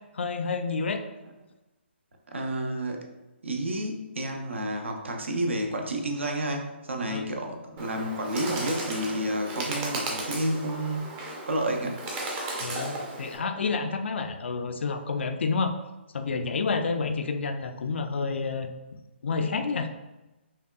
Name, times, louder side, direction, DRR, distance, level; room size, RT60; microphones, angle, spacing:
voice 1, 0.1-1.0 7.1-7.2 7.9-8.1 12.6-15.7 16.1-18.7 19.2-19.9, left 4 dB, 70° left, 6 dB, 0.4 m, -29 dB
voice 2, 2.3-3.1 3.4-11.2 11.5-12.0, right 1 dB, 75° right, 2 dB, 0.7 m, -30 dB
Bird, 7.8-13.4, right 2 dB, 20° right, 0.5 m, -35 dB
5.3 x 2.3 x 2.3 m, 1.0 s
figure-of-eight pair, 140°, 6 cm